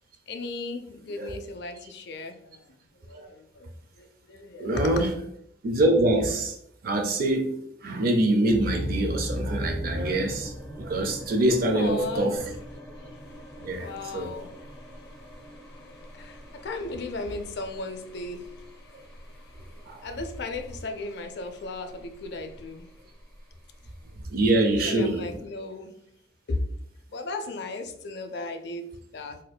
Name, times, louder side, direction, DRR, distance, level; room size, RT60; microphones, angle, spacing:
voice 1, 0.3-4.9 11.7-12.5 13.0-23.0 24.6-25.9 26.5-26.6 27.1-29.4, left 2 dB, 60° left, 7 dB, 0.4 m, -37 dB
voice 2, 4.6-5.1 5.6-6.5 6.8-10.5 10.8-12.4 13.6-14.3 19.9-20.0 24.3-25.3, right 1 dB, 50° right, 3 dB, 0.4 m, -24 dB
sound 1, 8.5-24.2, equal, 5° left, 0.7 m, -40 dB
4.3 x 2.5 x 2.2 m, 0.71 s
head